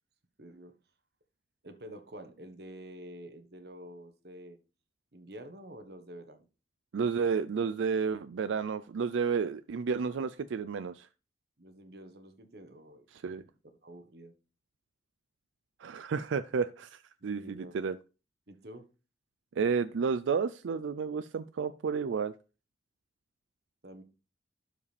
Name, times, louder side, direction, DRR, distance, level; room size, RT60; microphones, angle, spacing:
voice 1, 0.4-0.7 1.6-4.6 5.1-6.5 11.6-13.5 13.8-14.3 17.2-17.8 18.5-18.9 23.8-24.0, right 1 dB, 55° right, 1.2 m, -48 dB
voice 2, 6.9-11.1 13.1-13.4 15.8-18.0 19.6-22.3, right 5 dB, 90° right, 0.4 m, -31 dB
12.0 x 4.9 x 3.3 m
head